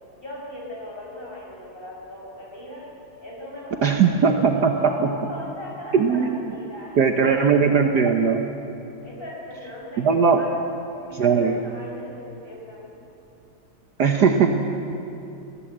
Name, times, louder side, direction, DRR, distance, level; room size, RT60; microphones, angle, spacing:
voice 1, 0.2-2.8 3.2-8.0 9.0-10.0 10.4-10.5 11.0-12.9, left 1 dB, 25° left, -4 dB, 6.3 m, -39 dB
voice 2, 3.8-5.1 5.9-6.5 7.0-8.4 10.0-10.4 11.2-11.6 14.0-14.5, right 6 dB, 60° right, 4 dB, 1.5 m, -19 dB
22.5 x 15.5 x 8.0 m, 2.8 s
omnidirectional pair, 2.2 m